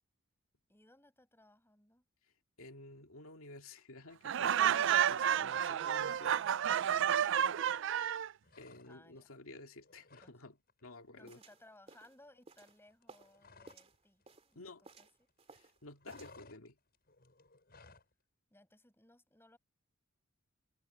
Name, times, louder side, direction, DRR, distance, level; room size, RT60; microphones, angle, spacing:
voice 1, 0.7-2.1 8.9-9.4 10.2-10.3 11.2-15.1 18.5-19.6, left 1 dB, 10° left, 6.9 m, -63 dB
voice 2, 2.6-6.4 8.6-10.6 10.8-11.4 14.6-14.8 15.5-16.8, left 2 dB, 85° left, 2.4 m, -52 dB
Laughter, 4.2-8.3, right 9 dB, 60° right, 0.4 m, -31 dB
sound 1, 8.4-9.3 9.6-10.4 10.7-10.9 11.2-14.0 14.2-15.3 15.6-18.1, left 3 dB, 50° left, 7.9 m, -60 dB
sound 2, 11.3-13.4 13.7-14.5 14.8-15.8 16.1-16.4, right 3 dB, 30° right, 2.8 m, -58 dB
head